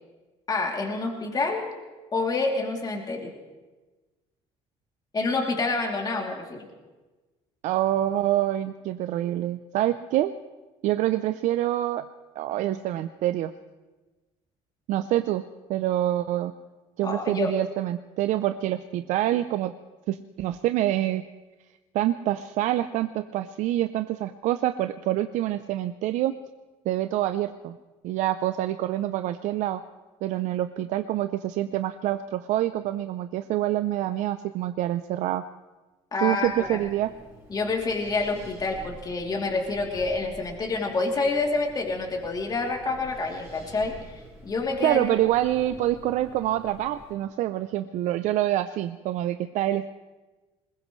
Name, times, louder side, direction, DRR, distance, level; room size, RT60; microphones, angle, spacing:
voice 1, 0.5-1.7 2.1-3.3 5.1-6.6 17.0-17.5 36.1-36.8 37.5-45.1, left 3 dB, 30° left, 0 dB, 2.9 m, -28 dB
voice 2, 7.6-10.3 10.8-12.0 12.4-13.5 14.9-15.4 15.7-16.5 17.0-19.7 20.1-21.2 21.9-26.3 26.9-27.8 28.0-29.8 30.2-35.4 36.2-37.1 44.8-49.9, right 13 dB, 75° right, 10 dB, 0.6 m, -26 dB
Wind, 36.4-47.1, right 1 dB, 20° right, 5.8 m, -48 dB
21.0 x 21.0 x 3.2 m, 1.2 s
cardioid pair, 105°, 13 cm